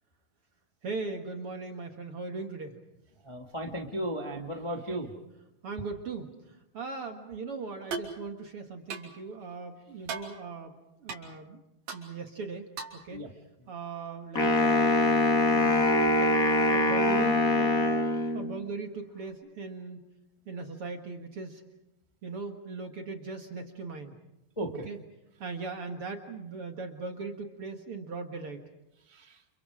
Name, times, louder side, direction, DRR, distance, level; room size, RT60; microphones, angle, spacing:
voice 1, 0.8-2.8 5.6-6.3 6.7-10.7 11.0-11.6 11.9-13.2 13.7-15.8 16.2-16.3 16.7-18.0 18.3-20.1 20.5-21.6 22.2-24.2 24.9-25.0 25.4-28.6, right 4 dB, 50° right, 4 dB, 2.0 m, -39 dB
voice 2, 3.2-5.1 13.1-13.3 24.6-24.9 29.1-29.4, right 1 dB, 15° left, 2 dB, 1.2 m, -35 dB
sound 1, 7.9-8.1 8.9-9.1 10.1-10.3 11.1-11.2 11.9-12.0 12.8-13.0, right 5 dB, 90° right, 5.0 m, -36 dB
Wind instrument woodwind instrument, 14.4-18.6, left 2 dB, 30° left, 2.0 m, -24 dB
30.0 x 29.0 x 4.9 m, 0.91 s
omnidirectional pair, 4.1 m